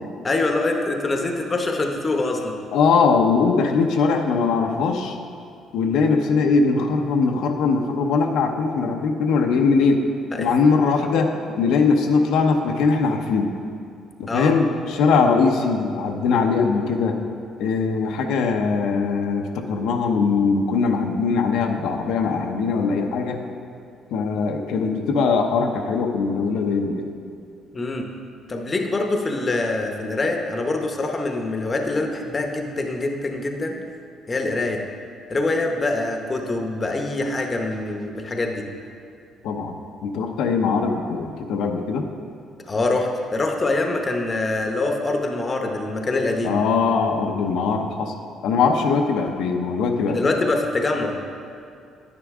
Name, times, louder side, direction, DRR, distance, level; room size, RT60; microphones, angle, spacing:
voice 1, 0.2-2.5 10.4-10.5 14.3-14.5 27.7-28.1 28.5-33.8 34.3-34.8 35.3-38.6 42.7-46.6 50.1-51.2, left 2 dB, 25° left, 3 dB, 0.8 m, -24 dB
voice 2, 2.7-5.2 5.7-10.0 10.4-13.5 14.2-17.2 17.6-23.4 24.1-27.1 39.4-42.1 46.4-48.1 48.4-50.2, left 4 dB, 85° left, 3 dB, 0.8 m, -21 dB
9.9 x 9.7 x 3.6 m, 2.4 s
cardioid pair, 145°, 0 cm